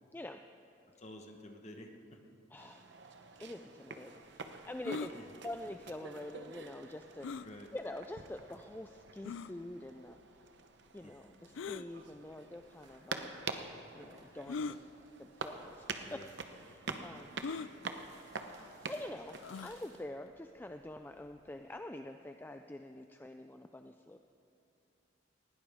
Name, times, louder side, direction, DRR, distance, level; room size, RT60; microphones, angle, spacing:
voice 1, 0.1-0.4 2.5-2.9 3.4-7.3 7.7-10.2 10.9-13.4 13.9-14.9 15.2-17.3 18.5-24.2, left 1 dB, 10° left, 6 dB, 0.3 m, -46 dB
voice 2, 1.0-2.2 5.1-5.2 7.4-7.7 11.0-11.3 16.0-16.3 16.9-17.1, left 1 dB, 35° left, 3 dB, 1.2 m, -51 dB
sound 1, 2.6-20.0, right 4 dB, 65° right, 0.9 m, -47 dB
sound 2, 4.8-5.1 7.2-7.5 8.3-8.4 9.2-9.5 11.5-11.9 12.9-13.0 14.5-14.8 15.7-15.9 16.1-16.2 17.4-17.7 19.4-19.8, left 4 dB, 85° left, 0.4 m, -40 dB
sound 3, 11.9-20.0, right 2 dB, 40° right, 4.1 m, -65 dB
20.0 x 16.5 x 3.6 m, 2.7 s
head